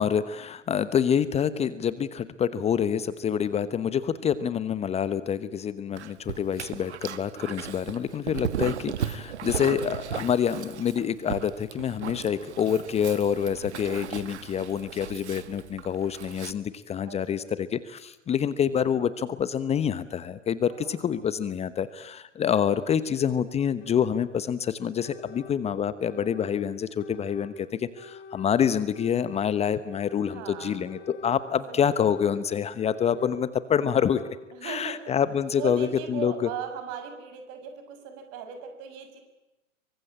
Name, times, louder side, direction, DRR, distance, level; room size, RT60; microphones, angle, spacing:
voice 1, 0.0-34.2 34.6-36.3, left 8 dB, 15° left, 15 dB, 1.1 m, -27 dB
Dog, 6.0-16.5, right 9 dB, 65° right, 1.7 m, -36 dB
voice 2, 17.1-17.5 20.7-21.0 30.3-31.2 31.7-31.9 34.5-35.1 35.6-39.2, right 7 dB, 40° right, 7 dB, 6.4 m, -38 dB
sound 1, 22.8-22.9 23.8-23.9 24.8-25.6 26.0-26.5 27.0-27.5 27.9-28.5 28.9-29.5 29.9-30.4 30.8-31.4 31.8-32.4 32.8-33.4 33.8-34.3, left 5 dB, 45° left, 5.8 m, -45 dB
27.0 x 24.0 x 8.8 m, 1.0 s
figure-of-eight pair, 105°, 36 cm